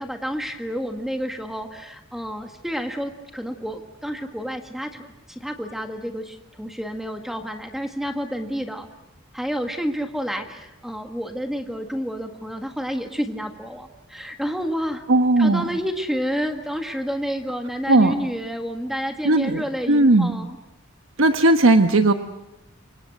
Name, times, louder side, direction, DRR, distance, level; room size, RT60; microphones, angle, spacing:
voice 1, 0.0-8.9 9.3-15.0 15.4-20.6, equal, ahead, 4 dB, 1.7 m, -29 dB
voice 2, 15.1-15.6 17.9-18.1 19.2-20.3 21.2-22.1, right 2 dB, 75° right, 7 dB, 1.2 m, -17 dB
29.0 x 25.0 x 7.9 m, 0.92 s
head